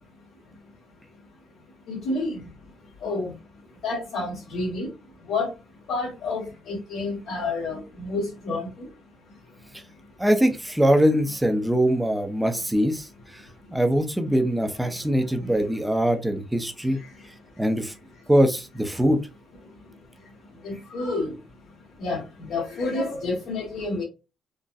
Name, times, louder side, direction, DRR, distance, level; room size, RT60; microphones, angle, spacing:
voice 1, 1.9-2.4 3.0-3.3 3.8-4.9 5.3-5.5 5.9-8.7 20.6-21.3 22.0-24.0, left 3 dB, 75° left, -3 dB, 1.3 m, -29 dB
voice 2, 10.2-13.4 13.7-17.0 17.6-17.9 18.3-19.2, equal, 5° right, 7 dB, 0.6 m, -22 dB
3.9 x 2.2 x 2.5 m, 0.28 s
cardioid pair, 90°, 0 cm